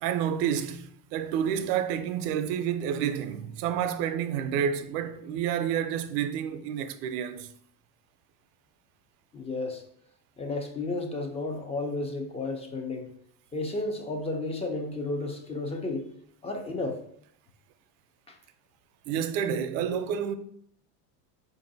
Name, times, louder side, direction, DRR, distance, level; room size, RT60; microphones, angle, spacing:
voice 1, 0.0-7.5 19.1-20.4, right 8 dB, 80° right, 0.6 m, -29 dB
voice 2, 9.3-9.8 10.4-13.1 13.5-16.1 16.4-17.0 18.3-18.4, left 2 dB, 15° left, 0.4 m, -32 dB
4.6 x 2.6 x 3.9 m
supercardioid pair, 125°, 47 cm